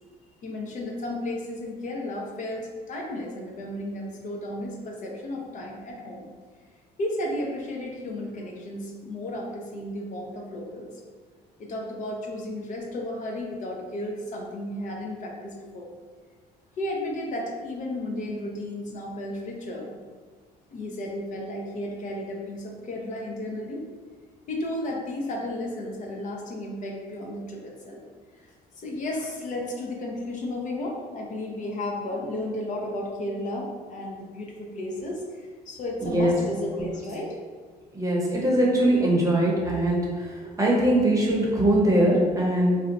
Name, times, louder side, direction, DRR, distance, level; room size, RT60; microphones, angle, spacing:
voice 1, 0.4-6.3 7.0-10.9 11.6-15.9 16.8-19.9 20.7-23.8 24.5-28.0 28.3-28.5 28.8-37.4, left 1 dB, 45° left, -1 dB, 0.6 m, -33 dB
voice 2, 36.0-36.3 36.8-36.9 37.9-42.8, right 1 dB, 20° right, -3 dB, 0.8 m, -22 dB
2.6 x 2.1 x 3.9 m, 1.5 s
cardioid pair, 110°, 17 cm